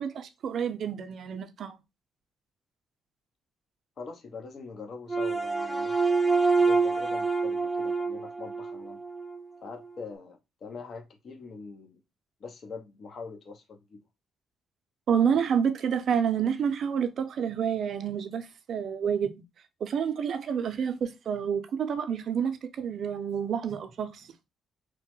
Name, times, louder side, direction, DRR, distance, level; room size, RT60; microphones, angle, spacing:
voice 1, 0.0-1.8 15.1-19.3 19.8-24.3, right 7 dB, 60° right, 0.4 m, -29 dB
voice 2, 4.0-6.1 6.6-9.0 9.6-12.0 12.4-14.0, left 4 dB, 55° left, 0.6 m, -43 dB
sound 1, 5.1-9.4, right 4 dB, ahead, 0.5 m, -26 dB
3.0 x 2.1 x 2.9 m
cardioid pair, 90°, 0 cm